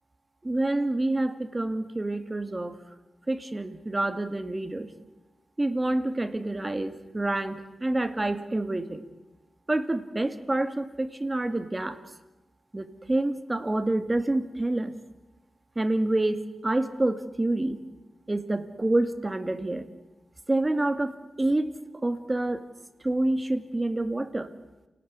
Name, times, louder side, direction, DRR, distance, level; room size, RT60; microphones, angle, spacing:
voice 1, 0.4-2.8 3.3-4.9 5.6-9.1 9.7-12.0 12.7-14.9 15.8-17.8 18.3-19.9 20.5-21.7 22.0-22.7 23.0-24.5, right 2 dB, 20° right, 10 dB, 2.2 m, -27 dB
29.0 x 18.5 x 9.5 m, 1.1 s
cardioid pair, 80°, 0 cm